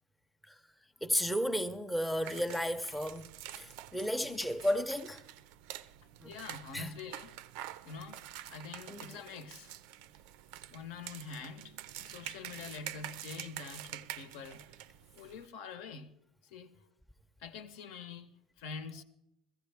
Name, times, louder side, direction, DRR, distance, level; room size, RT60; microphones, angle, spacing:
voice 1, 1.0-3.3 3.6-5.2 6.2-6.3 6.7-6.9 8.9-9.2, equal, 5° left, 0.5 m, -33 dB
sound 1, 2.2-15.5, right 13 dB, 80° right, 0.4 m, -47 dB
voice 2, 6.2-7.4 7.8-8.2 8.5-9.7 10.7-14.7 15.2-16.1 16.5-16.7 17.4-18.3 18.6-19.0, left 5 dB, 85° left, 0.9 m, -46 dB
15.5 x 15.0 x 3.4 m
cardioid pair, 145°, 0 cm